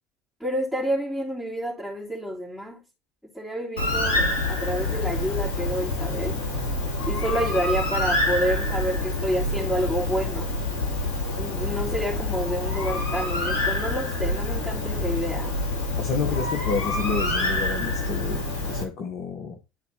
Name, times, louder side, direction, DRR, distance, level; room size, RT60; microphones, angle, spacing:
voice 1, 0.4-2.8 3.3-6.4 7.1-10.5 11.4-15.5, equal, ahead, 3.0 m, -29 dB
Bird, 3.8-18.8, left 2 dB, 65° left, 2.5 m, -27 dB
voice 2, 16.0-19.6, left 5 dB, 45° left, 1.2 m, -30 dB
12.0 x 4.2 x 2.9 m
figure-of-eight pair, 65°, 0 cm